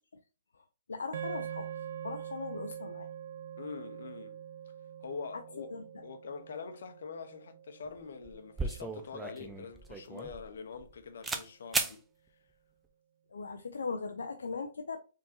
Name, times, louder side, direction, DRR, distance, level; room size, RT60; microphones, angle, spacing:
voice 1, 0.5-1.7 2.0-3.1 5.3-6.0 13.3-15.0, left 4 dB, 90° left, 0.5 m, -39 dB
sound 1, 1.1-9.5, right 9 dB, 65° right, 0.5 m, -44 dB
voice 2, 3.6-4.4 5.0-5.7 6.0-12.0, left 5 dB, 75° left, 0.9 m, -44 dB
sound 2, 7.8-8.0 8.2-10.9 11.2-11.5 11.7-12.0, right 3 dB, 10° right, 0.6 m, -35 dB
4.3 x 3.7 x 2.7 m
hypercardioid pair, 140°, 0 cm